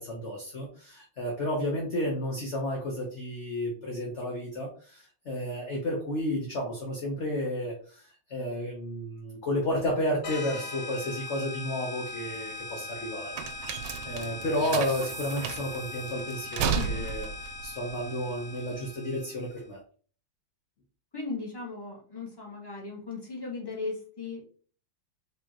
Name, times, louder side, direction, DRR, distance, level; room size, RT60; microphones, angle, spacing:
voice 1, 0.0-19.8, left 1 dB, 45° left, -1 dB, 1.1 m, -32 dB
sound 1, 10.2-19.6, left 3 dB, 75° left, 1.7 m, -40 dB
sound 2, 12.1-18.9, right 6 dB, 85° right, 1.4 m, -34 dB
voice 2, 16.7-17.1 21.1-24.4, left 3 dB, 10° left, -4 dB, 1.8 m, -37 dB
5.0 x 3.4 x 2.9 m, 0.42 s
omnidirectional pair, 2.2 m